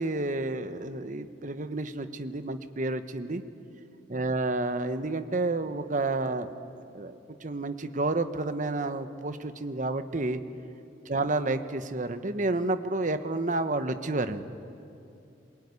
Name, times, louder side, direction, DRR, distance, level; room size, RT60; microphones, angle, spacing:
voice 1, 0.0-3.4 4.1-6.5 6.9-10.4 11.1-14.4, right 2 dB, 45° right, 10 dB, 1.1 m, -30 dB
23.0 x 22.0 x 9.7 m, 2.6 s
head